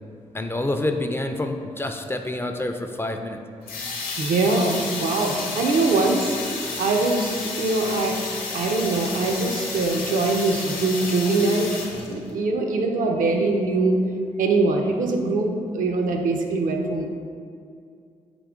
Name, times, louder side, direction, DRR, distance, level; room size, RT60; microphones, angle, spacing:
voice 1, 0.3-3.4, left 1 dB, 15° left, 5 dB, 0.3 m, -27 dB
sound 1, 3.6-12.3, left 3 dB, 90° left, 0.5 m, -31 dB
voice 2, 4.2-6.3 6.8-8.2 8.5-14.0 14.4-17.1, right 3 dB, 70° right, 3 dB, 0.5 m, -23 dB
3.7 x 2.9 x 3.6 m, 2.3 s
supercardioid pair, 50°, 14 cm